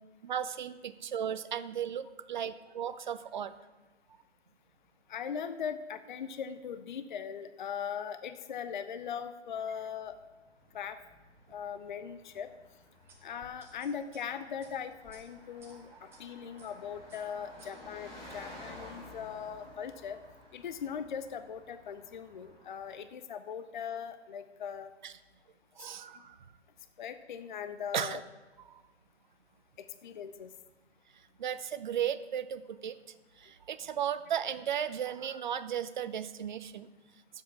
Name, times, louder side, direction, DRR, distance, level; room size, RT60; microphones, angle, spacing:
voice 1, 0.2-3.5 25.0-25.1 25.8-26.4 27.9-28.2 28.7-28.8 31.4-33.0 33.4-36.9, right 9 dB, 40° right, 13 dB, 0.6 m, -35 dB
voice 2, 5.1-10.2 10.7-11.0 11.5-12.5 13.2-20.2 20.5-24.9 27.0-28.2 29.8-30.5, left 7 dB, 45° left, 11 dB, 0.6 m, -40 dB
Car passing by, 9.8-23.0, left 1 dB, 10° left, 3.7 m, -53 dB
sound 1, 13.1-16.2 16.6-16.8 17.1-18.4, right 2 dB, 5° right, 0.9 m, -59 dB
9.4 x 7.5 x 6.1 m, 1.2 s
figure-of-eight pair, 140°, 35 cm